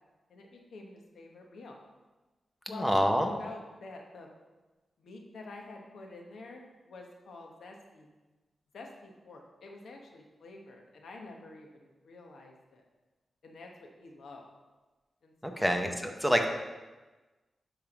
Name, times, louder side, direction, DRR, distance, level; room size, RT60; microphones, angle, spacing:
voice 1, 0.3-1.8 2.7-4.3 5.0-8.1 8.7-12.8 13.4-14.4 15.2-15.8, left 2 dB, 85° left, 1 dB, 1.2 m, -48 dB
voice 2, 2.7-3.3 15.4-16.5, equal, ahead, 4 dB, 0.8 m, -27 dB
10.0 x 3.6 x 6.0 m, 1.2 s
wide cardioid pair, 145°, 0 cm